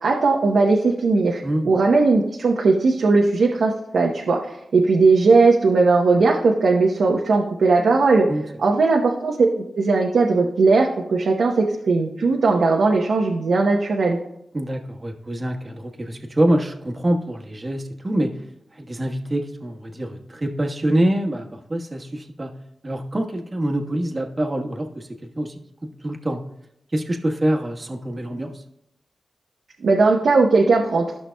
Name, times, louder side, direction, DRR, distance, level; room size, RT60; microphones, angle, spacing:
voice 1, 0.0-1.4 1.6-8.3 8.6-9.5 9.8-14.2 29.8-31.2, right 3 dB, 80° right, 0 dB, 0.8 m, -18 dB
voice 2, 1.4-1.8 8.3-8.4 14.5-18.3 18.7-22.5 22.8-25.1 25.4-25.6 26.0-26.4 26.9-28.6, right 1 dB, 35° right, 2 dB, 1.3 m, -25 dB
13.0 x 5.8 x 2.2 m, 0.78 s
cardioid pair, 45°, 0 cm